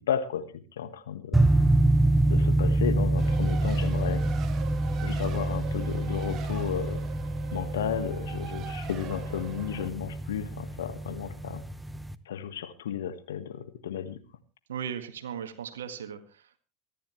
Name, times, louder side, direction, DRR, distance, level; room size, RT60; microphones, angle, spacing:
voice 1, 0.1-1.6 2.3-4.2 5.0-7.0 7.5-11.6 12.2-14.2, left 9 dB, 75° left, 11 dB, 1.5 m, -33 dB
sound 1, 1.3-12.1, right 1 dB, 5° right, 1.0 m, -26 dB
Race car auto racing, 3.2-9.9, right 8 dB, 40° right, 1.9 m, -43 dB
voice 2, 14.7-16.6, right 8 dB, 80° right, 9 dB, 1.7 m, -37 dB
24.0 x 11.5 x 3.2 m, 0.33 s
hypercardioid pair, 80°, 0 cm